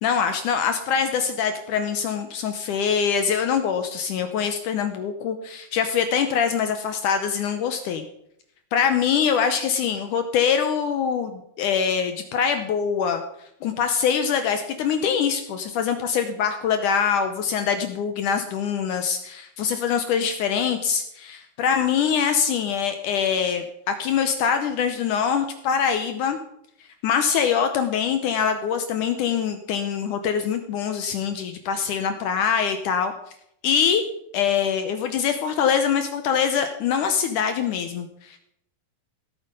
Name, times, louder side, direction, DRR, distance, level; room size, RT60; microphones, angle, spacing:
voice 1, 0.0-8.1 8.7-13.2 13.6-26.4 27.0-33.1 33.6-34.0 34.3-38.4, left 7 dB, 75° left, 8 dB, 1.9 m, -24 dB
17.5 x 8.7 x 5.3 m, 0.73 s
omnidirectional pair, 4.6 m